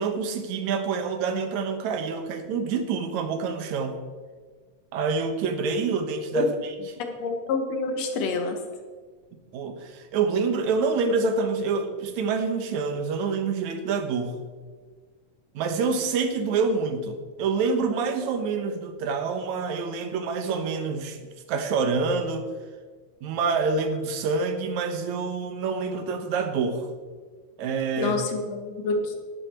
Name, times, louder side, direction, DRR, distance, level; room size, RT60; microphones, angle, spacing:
voice 1, 0.0-4.0 4.9-6.5 9.5-14.4 15.5-21.2 21.5-22.5 23.2-26.9 27.6-28.1, right 4 dB, 75° right, 7 dB, 2.4 m, -27 dB
voice 2, 7.0-8.6 28.0-29.2, left 3 dB, 65° left, 5 dB, 2.4 m, -27 dB
11.5 x 10.5 x 4.4 m, 1.5 s
omnidirectional pair, 3.4 m